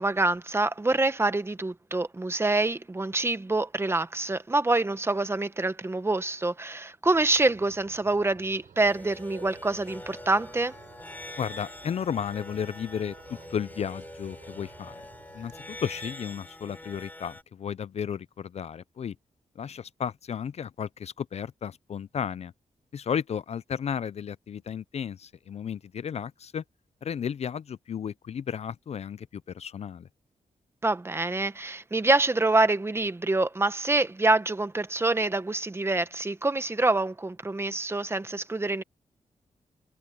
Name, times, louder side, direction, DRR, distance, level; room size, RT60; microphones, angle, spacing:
voice 1, 0.0-10.7 30.8-38.8, right 2 dB, 20° right, 0.9 m, -26 dB
sound 1, 7.0-16.1, right 7 dB, 85° right, 7.1 m, -53 dB
sound 2, 8.8-17.4, left 1 dB, 15° left, 6.8 m, -44 dB
voice 2, 11.4-15.0 15.3-19.1 19.6-22.5 22.9-26.6 27.0-30.1, left 8 dB, 55° left, 0.4 m, -33 dB
wide cardioid pair, 130°, 13 cm